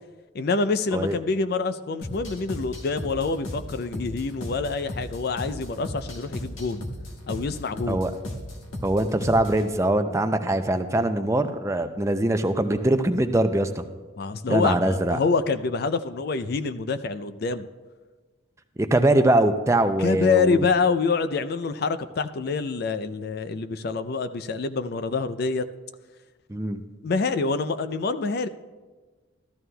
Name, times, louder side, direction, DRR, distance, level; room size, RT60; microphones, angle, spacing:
voice 1, 0.3-6.9 7.3-8.0 14.2-17.7 20.0-25.7 27.0-28.5, left 4 dB, 50° left, 11 dB, 0.4 m, -26 dB
sound 1, 2.0-9.7, left 1 dB, 75° left, 1.3 m, -36 dB
voice 2, 8.8-13.8 14.5-15.2 18.8-20.7 26.5-26.8, right 1 dB, 15° right, 8 dB, 0.4 m, -22 dB
14.0 x 12.5 x 2.3 m, 1.3 s
head